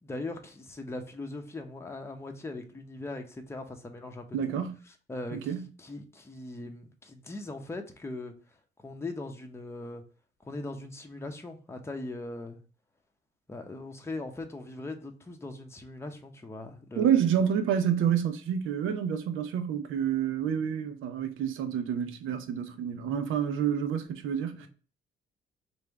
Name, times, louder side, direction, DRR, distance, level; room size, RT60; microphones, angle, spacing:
voice 1, 0.0-4.6 5.1-8.3 8.8-10.0 10.4-12.6 13.5-17.1 24.5-24.7, left 2 dB, 15° left, 0.8 m, -40 dB
voice 2, 4.3-4.8 5.3-5.7 17.0-24.7, right 8 dB, 85° right, 0.7 m, -28 dB
3.3 x 2.6 x 4.5 m
cardioid pair, 90°, 20 cm